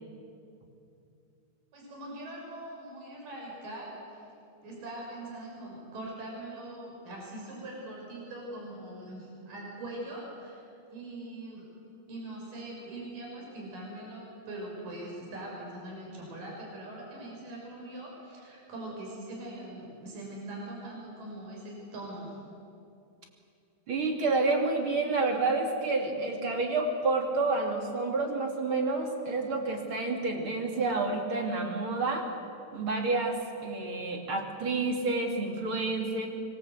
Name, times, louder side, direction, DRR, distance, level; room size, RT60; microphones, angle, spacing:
voice 1, 1.7-4.2 4.6-10.6 10.9-11.7 12.1-22.4, right 1 dB, 55° right, -2 dB, 7.5 m, -42 dB
voice 2, 23.9-32.3 32.7-36.3, right 3 dB, 35° right, 2 dB, 2.9 m, -29 dB
25.0 x 23.5 x 8.1 m, 2.6 s
omnidirectional pair, 4.5 m